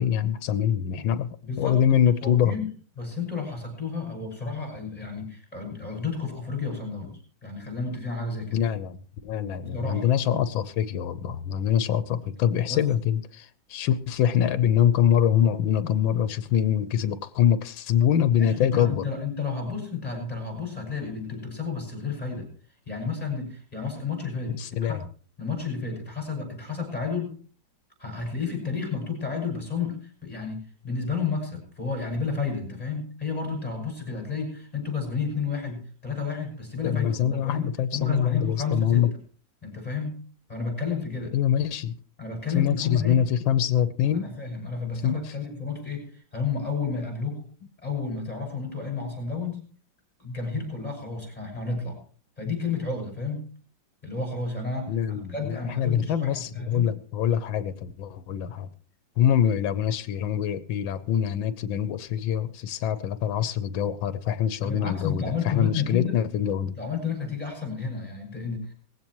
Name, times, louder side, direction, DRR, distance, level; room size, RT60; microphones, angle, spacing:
voice 1, 0.0-1.3 1.6-2.6 8.5-9.0 9.2-19.1 24.5-25.0 36.8-39.1 41.3-41.9 42.5-44.3 45.0-45.2 54.9-58.7 59.2-66.8, left 9 dB, 90° left, 1.6 m, -24 dB
voice 2, 1.4-2.7 3.0-8.6 9.6-10.1 12.7-12.9 18.4-22.5 22.9-25.0 25.4-27.4 28.0-37.7 37.9-39.1 39.6-40.2 40.5-41.3 42.2-43.3 44.0-47.4 47.8-49.7 50.2-52.0 52.4-53.4 54.0-56.9 64.6-66.2 66.8-68.7, left 5 dB, 20° left, 6.5 m, -31 dB
19.5 x 16.0 x 3.1 m
omnidirectional pair, 2.1 m